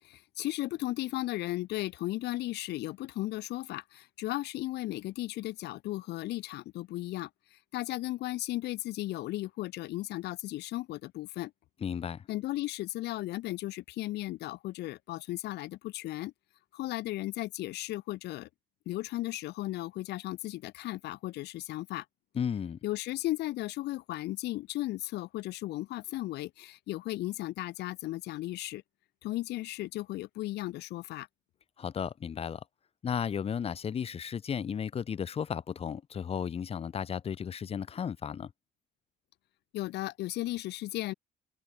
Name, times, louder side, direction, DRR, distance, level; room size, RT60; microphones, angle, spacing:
voice 1, 0.0-11.5 12.3-16.3 16.7-18.5 18.9-22.1 22.8-28.8 29.2-31.3 39.7-41.1, left 17 dB, 80° left, 3.9 m, -35 dB
voice 2, 11.8-12.2 22.3-22.8 31.8-32.6 33.0-38.5, left 7 dB, 35° left, 0.9 m, -34 dB
open air
cardioid pair, 110°, 17 cm